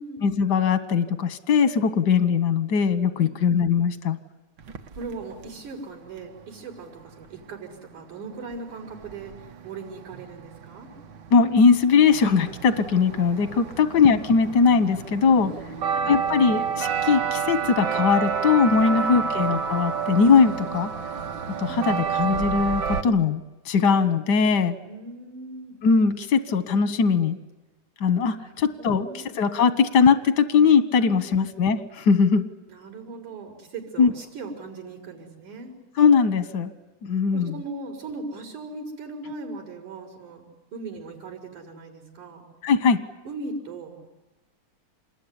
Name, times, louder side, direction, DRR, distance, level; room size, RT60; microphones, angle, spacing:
voice 1, 0.2-4.2 11.3-15.5 16.1-20.9 21.6-23.4 23.6-24.7 25.8-27.4 28.0-32.5 34.0-34.1 36.0-36.7 37.0-37.5 42.6-43.0, left 5 dB, 65° left, 11 dB, 1.0 m, -20 dB
voice 2, 3.2-3.6 4.9-10.9 13.8-14.0 15.2-16.1 21.7-22.1 24.8-25.8 28.4-29.4 31.0-31.5 32.7-35.8 37.3-40.4 40.7-42.4 43.3-44.0, right 3 dB, 90° right, -8 dB, 7.3 m, -39 dB
sound 1, 4.6-5.5 8.5-8.6 8.8-23.0, right 6 dB, 65° right, 1.0 m, -30 dB
27.5 x 21.0 x 10.0 m, 1.1 s
omnidirectional pair, 3.4 m